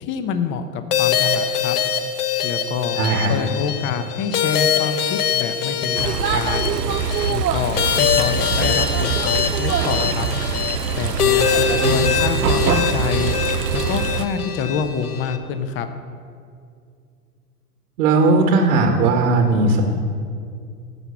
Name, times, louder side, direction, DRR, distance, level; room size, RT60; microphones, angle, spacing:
voice 1, 0.0-1.8 2.4-3.0 3.3-6.7 7.3-10.3 10.9-13.3 13.7-15.9, left 6 dB, 25° left, 9 dB, 0.8 m, -26 dB
sound 1, 0.9-15.4, left 7 dB, 70° left, 1.2 m, -23 dB
voice 2, 3.0-3.3 11.8-11.9 18.0-19.8, right 3 dB, 60° right, 3 dB, 1.6 m, -17 dB
sound 2, 5.9-14.2, right 7 dB, 90° right, 0.7 m, -23 dB
15.0 x 5.9 x 7.1 m, 2.3 s
hypercardioid pair, 105°, 47 cm